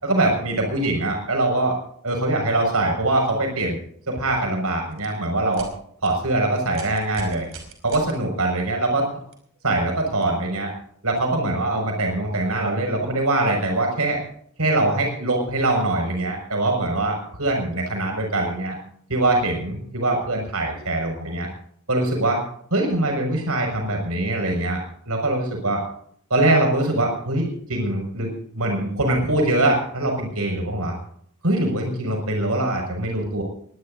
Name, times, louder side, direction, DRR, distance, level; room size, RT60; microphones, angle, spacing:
voice 1, 0.0-1.8 2.0-3.8 4.1-5.7 6.0-7.5 7.8-9.1 9.6-10.7 11.0-14.2 14.6-18.8 19.1-21.5 21.9-22.4 22.7-24.8 25.1-25.8 26.3-31.0 31.4-33.4, right 2 dB, 85° right, 2 dB, 5.9 m, -23 dB
sound 1, 4.9-5.1 5.5-5.7 6.0-6.1 6.7-8.1 9.3-9.4 10.2-10.3, right 4 dB, 65° right, 5.6 m, -40 dB
23.5 x 19.0 x 2.7 m, 0.62 s
head